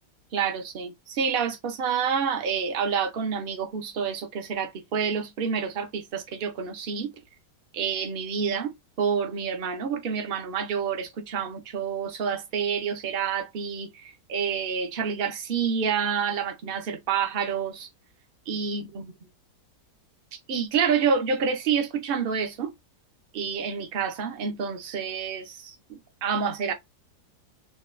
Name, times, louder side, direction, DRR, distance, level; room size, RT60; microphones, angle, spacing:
voice 1, 0.3-7.1 7.7-17.9 18.5-19.1 20.3-22.7 23.3-26.7, right 6 dB, 60° right, 0.6 m, -28 dB
3.2 x 2.2 x 3.1 m
omnidirectional pair, 1.9 m